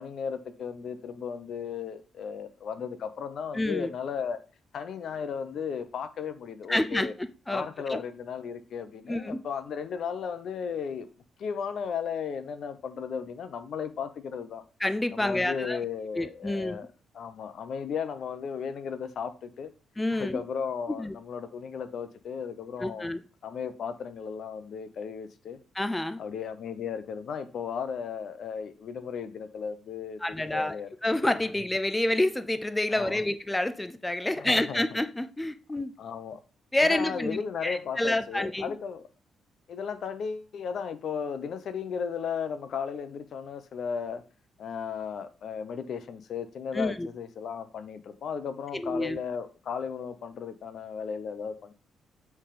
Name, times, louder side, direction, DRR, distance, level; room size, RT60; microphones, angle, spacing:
voice 1, 0.0-4.4 4.7-7.1 7.5-11.1 11.4-14.6 15.1-16.9 17.1-19.7 20.1-23.1 23.4-25.6 26.2-30.2 30.5-30.9 32.9-33.2 34.4-34.8 36.0-36.4 36.8-39.0 39.7-44.2 44.6-51.7, left 6 dB, 60° left, 0.9 m, -35 dB
voice 2, 3.5-3.9 6.7-7.1 7.5-8.0 9.1-9.4 14.8-15.8 16.2-16.8 20.0-20.4 20.9-21.2 22.8-23.2 25.7-26.2 30.2-30.8 31.0-35.9 36.7-38.7 46.7-47.1 48.7-49.2, left 1 dB, 10° left, 0.5 m, -28 dB
8.4 x 3.6 x 5.0 m
cardioid pair, 90°, 0 cm